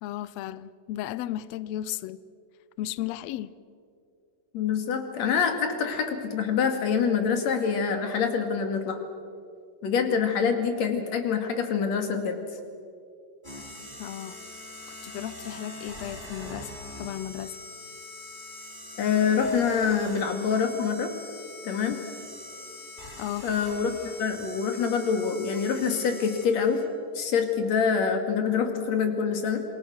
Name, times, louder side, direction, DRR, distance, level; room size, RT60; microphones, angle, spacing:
voice 1, 0.0-2.2 2.8-3.5 14.0-14.4 15.0-16.7 17.0-17.6 23.2-23.5, left 13 dB, 90° left, 1.5 m, -34 dB
voice 2, 4.5-9.0 9.8-12.4 19.0-21.1 21.6-22.0 23.4-26.8 27.1-29.6, left 6 dB, 55° left, 3.2 m, -26 dB
sound 1, 13.4-26.9, left 1 dB, 15° left, 5.0 m, -43 dB
27.5 x 22.0 x 6.3 m
omnidirectional pair, 3.8 m